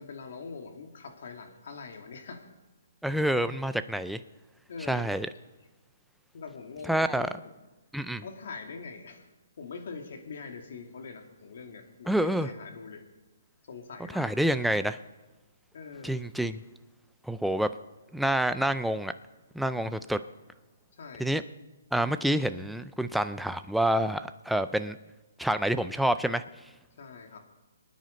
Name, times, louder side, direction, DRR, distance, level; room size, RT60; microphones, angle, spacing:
voice 1, 0.0-2.4 4.7-5.1 6.3-7.5 8.2-9.3 9.6-13.0 13.7-14.3 15.7-16.2 21.0-21.3 27.0-27.4, left 5 dB, 55° left, 4 dB, 2.4 m, -43 dB
voice 2, 3.0-4.2 4.9-5.3 6.8-7.3 7.9-8.2 12.1-12.5 14.1-15.0 16.0-16.6 17.2-17.7 18.1-19.1 19.5-20.2 21.2-21.4 21.9-25.0 25.4-26.4, right 1 dB, ahead, 10 dB, 0.4 m, -27 dB
24.5 x 9.3 x 5.2 m, 1.1 s
hypercardioid pair, 165°, 0 cm